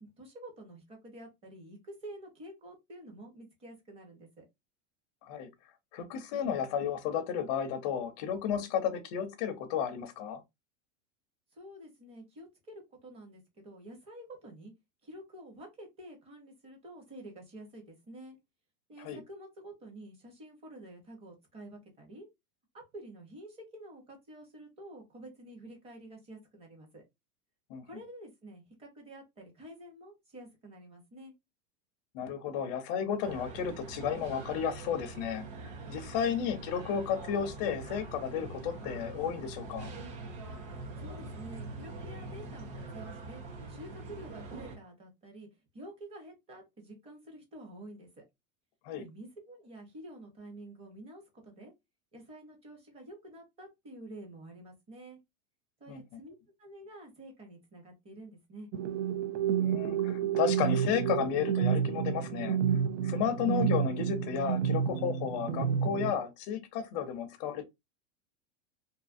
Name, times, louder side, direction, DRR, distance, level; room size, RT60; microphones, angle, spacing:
voice 1, 0.0-4.4 11.5-14.7 15.0-18.4 18.9-22.3 22.7-27.0 27.8-31.3 36.3-36.5 41.0-43.4 43.7-45.5 45.7-48.2 49.0-51.7 52.1-55.2 55.8-58.7 63.5-63.8, right 1 dB, 15° right, 0.7 m, -49 dB
voice 2, 5.9-10.4 19.0-19.2 27.7-27.8 32.1-35.5 35.9-39.9 48.8-49.1 55.9-56.0 59.6-62.6 63.0-67.7, left 8 dB, 35° left, 0.4 m, -33 dB
sound 1, 33.2-44.8, right 3 dB, 40° right, 0.9 m, -44 dB
sound 2, 58.7-66.1, right 8 dB, 85° right, 0.6 m, -30 dB
2.6 x 2.4 x 2.4 m
supercardioid pair, 165°, 38 cm